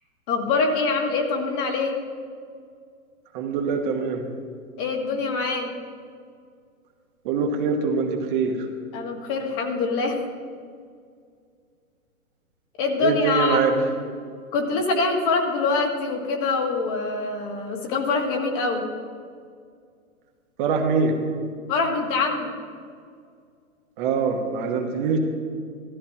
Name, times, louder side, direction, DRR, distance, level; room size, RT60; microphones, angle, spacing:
voice 1, 0.3-1.9 4.8-5.7 8.9-10.2 12.8-13.6 14.5-18.8 21.7-22.5, left 3 dB, 35° left, 1 dB, 2.0 m, -24 dB
voice 2, 3.3-4.3 7.2-8.7 13.0-13.7 20.6-21.1 24.0-25.2, right 5 dB, 35° right, 2 dB, 1.3 m, -23 dB
15.0 x 13.5 x 3.0 m, 2.1 s
hypercardioid pair, 130°, 43 cm